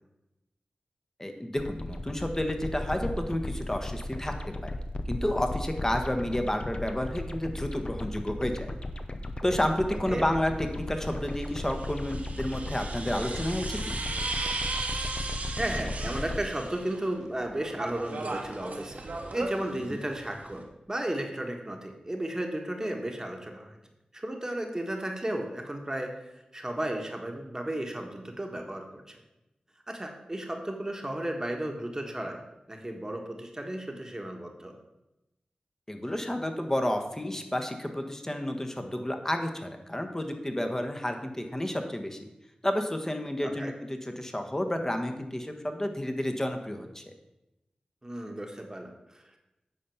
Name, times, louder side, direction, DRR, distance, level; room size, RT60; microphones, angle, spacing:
voice 1, 1.2-4.3 4.6-4.7 5.1-8.7 9.4-14.0 19.9-20.0 35.9-42.2 42.6-47.1, left 1 dB, 20° left, 5 dB, 1.3 m, -31 dB
sound 1, 1.6-16.4, left 1 dB, 40° left, 0.8 m, -36 dB
sound 2, 9.6-9.7 11.1-17.1 17.4-20.6, right 3 dB, 70° right, 1.4 m, -37 dB
voice 2, 15.5-19.0 19.3-23.8 24.1-26.1 26.5-29.2 29.9-32.4 32.7-34.7 43.4-43.7 48.0-49.4, right 1 dB, 25° right, 3 dB, 1.4 m, -34 dB
9.2 x 4.2 x 7.0 m, 0.94 s
cardioid pair, 50°, 3 cm